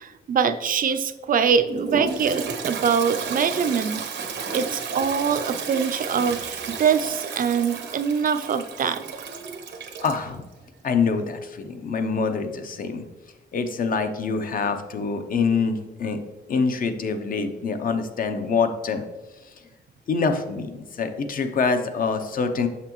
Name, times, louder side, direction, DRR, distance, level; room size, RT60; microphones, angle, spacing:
voice 1, 0.0-4.0 4.5-9.0, right 6 dB, 50° right, 10 dB, 0.4 m, -23 dB
Toilet flush, 1.7-10.2, right 5 dB, 85° right, 0.8 m, -32 dB
voice 2, 10.0-10.4 10.8-13.0 13.5-16.2 16.5-19.0 20.1-22.7, left 5 dB, 50° left, 8 dB, 0.6 m, -25 dB
6.7 x 5.8 x 3.0 m, 1.1 s
wide cardioid pair, 175°, 18 cm